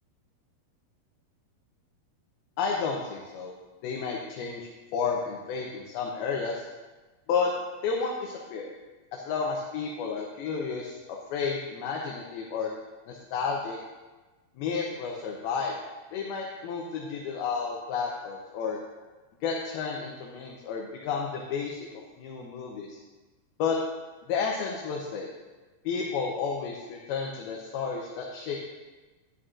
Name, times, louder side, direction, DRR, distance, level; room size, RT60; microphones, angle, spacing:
voice 1, 2.6-3.5 3.8-6.6 7.3-7.5 7.8-8.7 9.1-12.7 13.1-13.8 14.6-15.8 16.1-18.8 19.4-21.8 22.2-23.0 23.6-23.8 24.3-25.3 25.9-28.6, left 5 dB, 75° left, -1 dB, 2.6 m, -31 dB
11.0 x 10.5 x 2.5 m, 1.2 s
omnidirectional pair, 4.7 m